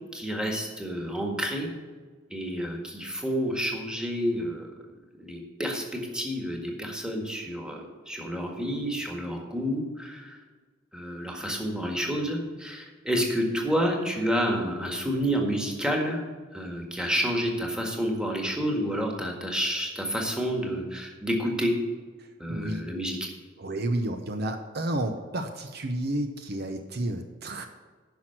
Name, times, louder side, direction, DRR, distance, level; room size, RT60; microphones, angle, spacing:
voice 1, 0.1-1.7 2.3-4.7 5.2-10.4 10.9-16.2 16.5-21.7 22.4-23.2, equal, 5° right, 1 dB, 1.7 m, -29 dB
voice 2, 22.5-22.8 23.6-27.7, right 1 dB, 55° right, 6 dB, 0.8 m, -31 dB
10.5 x 6.1 x 7.8 m, 1.5 s
head